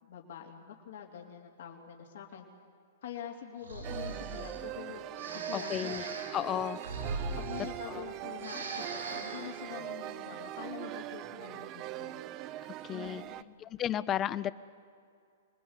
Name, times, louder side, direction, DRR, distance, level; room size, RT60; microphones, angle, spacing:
voice 1, 0.0-2.4 3.0-5.0 5.3-6.7 7.4-12.2 12.9-13.5, left 9 dB, 70° left, 1 dB, 3.1 m, -45 dB
Breathing, 3.6-4.6 5.2-8.1 8.3-9.5, right 3 dB, 90° right, 6.6 m, -40 dB
sound 1, 3.8-13.4, right 13 dB, 35° right, 0.7 m, -41 dB
voice 2, 5.5-6.0 6.3-6.8 7.9-8.1 12.8-13.2 13.6-14.5, left 11 dB, 25° left, 16 dB, 0.7 m, -33 dB
26.5 x 21.0 x 8.2 m, 2.3 s
hypercardioid pair, 125°, 0 cm